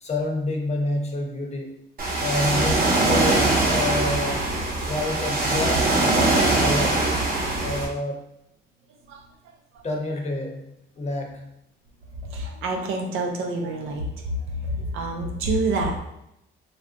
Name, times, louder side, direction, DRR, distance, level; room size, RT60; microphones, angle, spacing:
voice 1, 0.0-1.8 2.2-4.5 4.9-7.1 7.6-8.3 9.8-11.5, left 2 dB, 35° left, 1 dB, 0.7 m, -29 dB
Ocean, 2.0-7.9, right 2 dB, 45° right, 0.9 m, -22 dB
voice 2, 12.3-14.1 14.6-16.0, right 2 dB, 90° right, 1 dB, 0.6 m, -27 dB
3.3 x 2.4 x 2.5 m, 0.82 s
cardioid pair, 90°, 20 cm